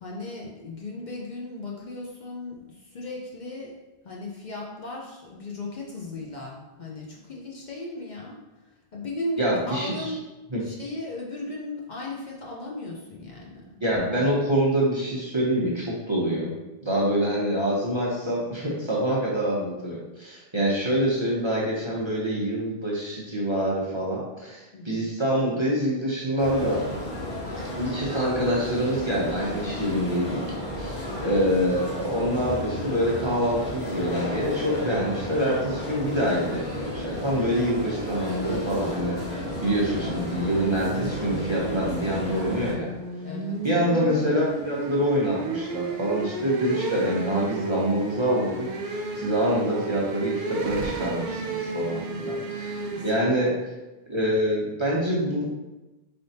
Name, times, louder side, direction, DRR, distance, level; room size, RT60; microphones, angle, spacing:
voice 1, 0.0-3.8 4.0-8.4 8.9-10.2 10.6-13.8 24.7-25.1 43.2-43.6 52.9-53.5, left 2 dB, 55° left, -3 dB, 0.7 m, -37 dB
voice 2, 9.4-10.1 10.5-10.6 13.8-16.5 16.8-26.8 27.7-30.4 30.7-42.9 43.6-48.7 48.9-53.5 54.1-55.5, equal, 30° right, -5 dB, 0.7 m, -26 dB
sound 1, 26.4-42.7, equal, 85° left, 1.6 m, -33 dB
sound 2, 39.7-53.2, right 3 dB, 80° right, 0.9 m, -33 dB
4.1 x 3.4 x 2.7 m, 1.1 s
omnidirectional pair, 1.0 m